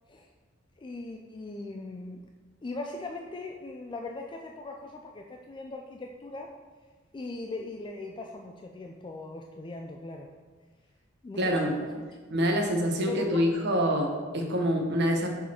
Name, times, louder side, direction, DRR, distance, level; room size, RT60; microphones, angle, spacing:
voice 1, 0.8-2.3 2.6-6.5 7.1-10.3 11.2-12.1 13.1-13.5, left 2 dB, 25° left, 2 dB, 0.3 m, -39 dB
voice 2, 11.4-11.7 12.3-15.3, equal, 60° right, 2 dB, 0.9 m, -26 dB
6.1 x 4.0 x 4.3 m, 1.5 s
head